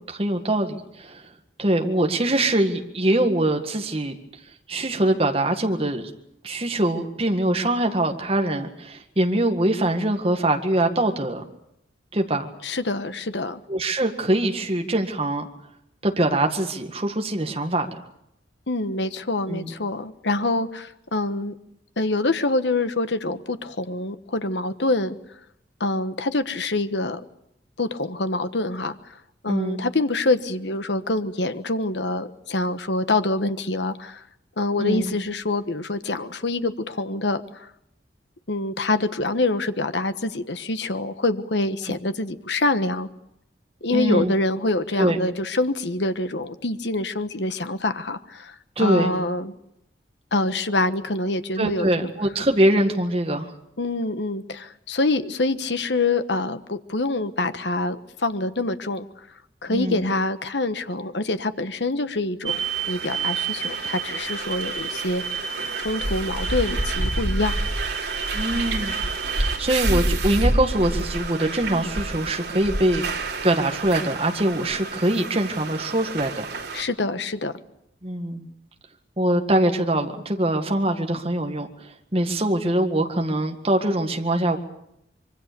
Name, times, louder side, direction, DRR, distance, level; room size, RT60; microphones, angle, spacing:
voice 1, 0.1-1.2 1.6-4.1 4.7-6.1 6.4-11.4 12.1-12.5 13.7-15.5 16.0-17.9 19.5-19.7 29.5-29.8 34.8-35.1 41.9-42.0 43.9-44.3 45.0-45.2 48.8-49.2 51.6-53.5 59.7-60.0 68.3-68.9 69.4-76.5 78.0-78.5 79.2-81.7 82.1-84.6, right 1 dB, 30° right, 4 dB, 1.9 m, -23 dB
voice 2, 12.6-13.6 18.7-21.5 22.0-25.2 25.8-27.2 27.8-28.9 29.4-34.2 34.6-37.7 38.5-43.1 43.8-49.5 50.3-52.1 53.8-59.1 59.6-65.5 65.8-67.6 76.7-77.5, left 2 dB, 75° left, 11 dB, 1.3 m, -25 dB
sound 1, 62.5-76.8, right 3 dB, 70° right, 3.0 m, -28 dB
25.0 x 24.0 x 6.9 m, 0.79 s
head